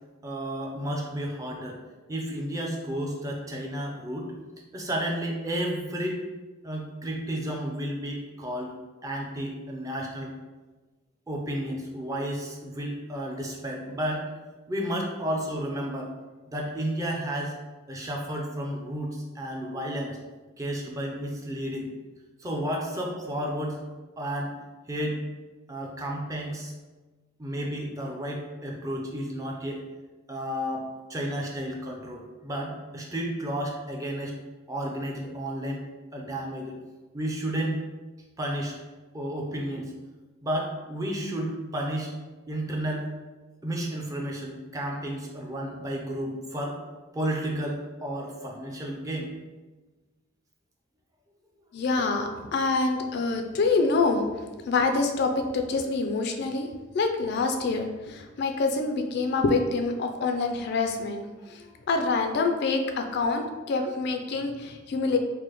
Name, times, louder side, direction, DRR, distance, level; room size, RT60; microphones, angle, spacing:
voice 1, 0.2-1.8 2.1-4.3 4.7-6.2 6.6-8.7 9.0-10.3 11.3-14.2 14.7-16.1 16.5-17.5 17.9-20.2 20.6-21.9 22.4-23.8 24.2-24.5 24.9-25.2 25.7-26.7 27.4-29.8 30.3-34.3 34.7-35.9 36.1-36.8 37.1-37.8 38.4-38.8 39.1-39.9 40.4-42.1 42.5-43.1 43.6-46.8 47.1-49.3, equal, 15° right, 0 dB, 0.4 m, -32 dB
voice 2, 51.7-56.7 56.9-65.2, left 3 dB, 55° left, 5 dB, 0.3 m, -26 dB
4.7 x 2.1 x 2.9 m, 1.2 s
head